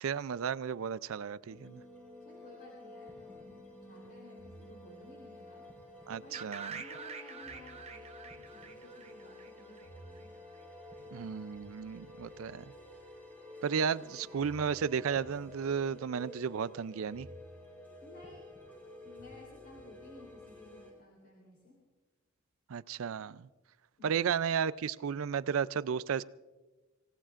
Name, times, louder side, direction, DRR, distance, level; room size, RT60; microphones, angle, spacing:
voice 1, 0.0-1.8 6.1-6.8 11.1-12.7 13.6-17.3 22.7-23.5 24.0-26.2, right 7 dB, 70° right, 0.4 m, -33 dB
sound 1, 1.5-20.9, left 1 dB, 10° left, 3.8 m, -51 dB
voice 2, 2.2-5.6 6.2-10.3 13.9-14.5 18.0-18.5 19.0-21.8 24.0-24.4, left 1 dB, 50° left, 3.3 m, -56 dB
sound 2, 6.3-10.2, right 5 dB, 30° right, 0.9 m, -46 dB
25.5 x 17.5 x 2.5 m
head